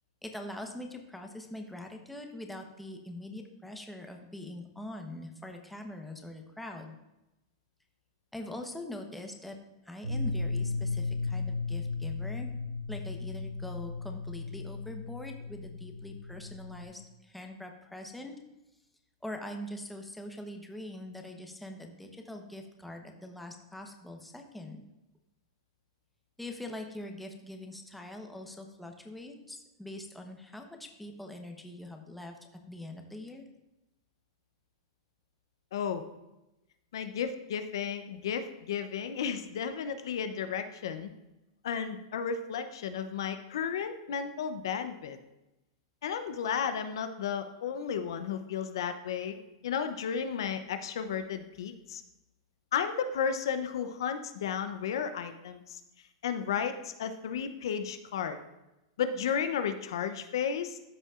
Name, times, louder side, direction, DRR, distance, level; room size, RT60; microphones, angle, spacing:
voice 1, 0.2-6.9 8.3-9.6 9.8-12.5 12.9-18.3 19.2-24.8 26.4-32.3 32.7-33.5, left 1 dB, 5° left, 3 dB, 0.9 m, -43 dB
sound 1, 10.0-16.9, left 3 dB, 80° right, 2.1 m, -35 dB
voice 2, 35.7-36.0 36.9-41.1 41.6-45.2 46.0-49.4 49.6-52.0 52.7-55.8 56.2-58.4 59.0-60.8, left 7 dB, 75° left, 9 dB, 0.7 m, -33 dB
13.0 x 5.4 x 2.5 m, 0.95 s
hypercardioid pair, 120°, 2 cm